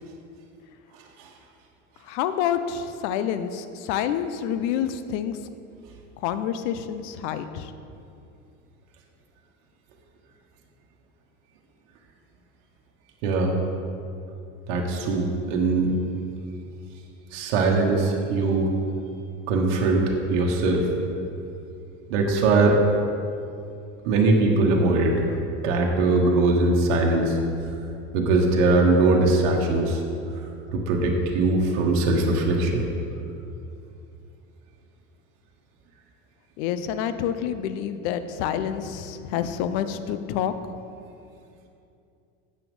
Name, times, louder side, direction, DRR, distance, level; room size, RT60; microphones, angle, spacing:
voice 1, 2.0-5.4 6.2-7.7 36.6-40.5, left 9 dB, 65° left, 11 dB, 0.7 m, -28 dB
voice 2, 13.2-13.6 14.7-15.9 17.3-18.7 19.5-20.9 22.1-22.8 24.0-25.2 25.6-27.4 28.1-30.0 30.7-32.8, right 2 dB, 70° right, 0 dB, 1.2 m, -21 dB
8.4 x 5.9 x 5.3 m, 2.6 s
hypercardioid pair, 95°, 37 cm